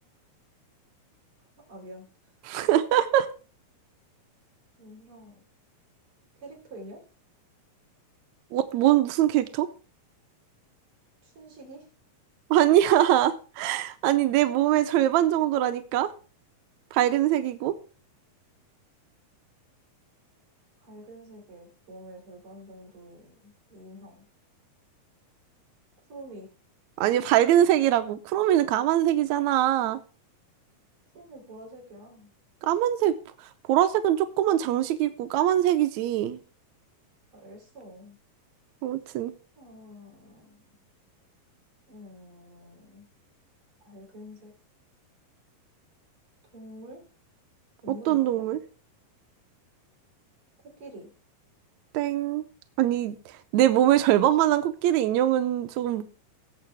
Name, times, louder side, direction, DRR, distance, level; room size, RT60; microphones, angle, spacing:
voice 1, 1.7-2.1 2.5-2.6 4.8-5.4 6.4-7.0 11.2-11.8 14.5-14.9 20.8-24.3 26.1-26.5 31.1-32.3 37.3-38.2 39.5-40.7 41.9-43.0 43.8-44.5 46.5-47.0 47.8-48.4 50.8-51.1, right 1 dB, 35° right, -1 dB, 5.0 m, -46 dB
voice 2, 2.4-3.3 8.5-9.7 12.5-16.1 16.9-17.8 27.0-30.0 32.6-33.1 33.7-36.4 38.8-39.3 48.1-48.6 51.9-52.4 52.8-53.2 53.5-56.0, right 12 dB, 85° right, 9 dB, 1.6 m, -22 dB
18.5 x 7.6 x 3.4 m, 0.36 s
omnidirectional pair, 4.1 m